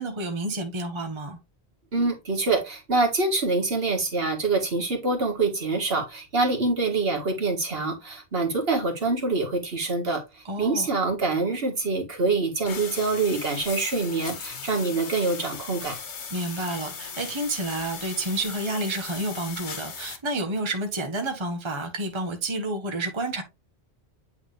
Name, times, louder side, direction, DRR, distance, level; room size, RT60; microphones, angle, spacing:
voice 1, 0.0-1.4 10.4-10.9 16.3-23.4, right 2 dB, 25° right, 1.1 m, -30 dB
voice 2, 1.9-16.0, right 3 dB, 60° right, 1.9 m, -25 dB
sound 1, 12.6-20.2, left 6 dB, 90° left, 1.4 m, -38 dB
8.7 x 3.5 x 3.3 m
omnidirectional pair, 1.1 m